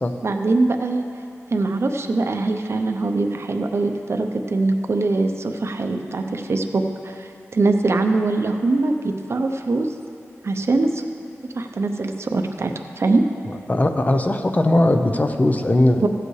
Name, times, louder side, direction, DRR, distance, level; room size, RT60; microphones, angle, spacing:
voice 1, 0.2-1.0 1.5-9.9 10.4-11.0 11.5-13.2 16.0-16.1, right 3 dB, 55° right, 5 dB, 0.7 m, -22 dB
voice 2, 13.7-16.0, left 1 dB, 30° left, 6 dB, 0.6 m, -18 dB
15.0 x 7.8 x 3.2 m, 2.5 s
wide cardioid pair, 90°, 5 cm